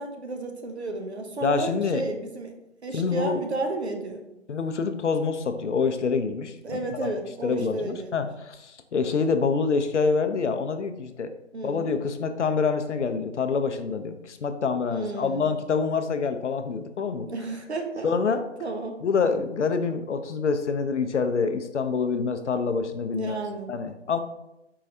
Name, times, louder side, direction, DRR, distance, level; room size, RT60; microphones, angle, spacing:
voice 1, 0.0-2.5 2.8-4.2 6.6-8.3 11.5-11.9 14.9-15.5 17.0-18.1 18.6-19.0 23.1-23.8, right 2 dB, 60° right, 4 dB, 0.7 m, -32 dB
voice 2, 1.4-2.0 2.9-3.4 4.5-7.1 7.4-11.3 11.6-17.3 18.0-18.4 19.0-23.4 23.7-24.2, left 5 dB, 70° left, 9 dB, 0.5 m, -26 dB
4.6 x 3.2 x 2.6 m, 0.88 s
hypercardioid pair, 180°, 37 cm